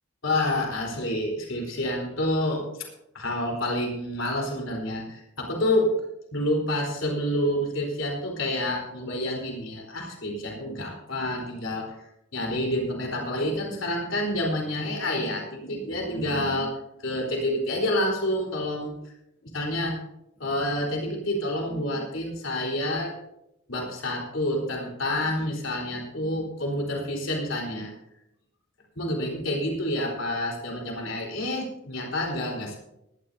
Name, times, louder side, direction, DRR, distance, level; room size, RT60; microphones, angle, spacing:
voice 1, 0.2-2.7 3.1-5.9 6.3-12.0 12.3-18.9 19.5-20.0 20.4-23.1 23.7-27.9 29.0-32.8, left 1 dB, 70° left, 0 dB, 4.3 m, -28 dB
20.5 x 12.0 x 2.8 m, 0.85 s
head